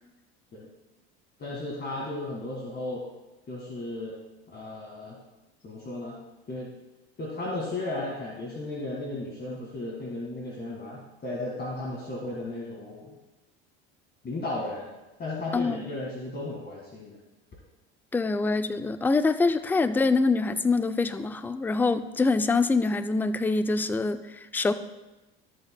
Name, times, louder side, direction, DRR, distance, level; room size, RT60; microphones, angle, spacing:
voice 1, 1.4-3.1 3.5-4.2 4.5-5.2 5.6-6.2 6.5-6.7 7.2-13.2 14.2-14.9 15.2-17.2, left 2 dB, 35° left, -3 dB, 1.8 m, -35 dB
voice 2, 15.5-15.8 18.1-24.7, left 3 dB, 5° left, 11 dB, 0.3 m, -25 dB
13.0 x 7.9 x 2.2 m, 1.1 s
supercardioid pair, 90°, 31 cm